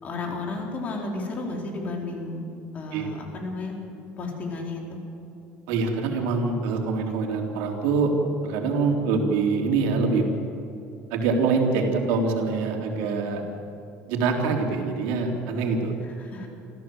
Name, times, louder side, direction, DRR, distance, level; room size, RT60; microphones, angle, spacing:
voice 1, 0.0-2.4 2.7-3.8 4.2-5.0 16.0-16.5, left 3 dB, 40° left, 1 dB, 4.5 m, -33 dB
voice 2, 5.7-8.1 8.4-10.3 11.1-13.4 14.1-15.9, right 4 dB, 85° right, 2 dB, 3.7 m, -24 dB
26.5 x 14.5 x 7.8 m, 2.8 s
cardioid pair, 130°, 4 cm